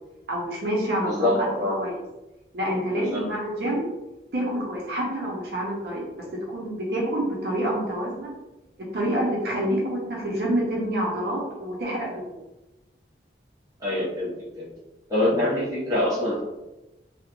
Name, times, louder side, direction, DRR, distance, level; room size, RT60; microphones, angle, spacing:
voice 1, 0.3-1.3 1.8-2.0 2.5-3.8 4.3-8.3 8.9-12.4, right 1 dB, 65° right, -3 dB, 0.6 m, -27 dB
voice 2, 1.0-1.8 2.9-3.3 13.8-14.7 15.1-16.4, left 1 dB, 20° right, -8 dB, 0.9 m, -25 dB
2.4 x 2.1 x 2.9 m, 1.0 s
head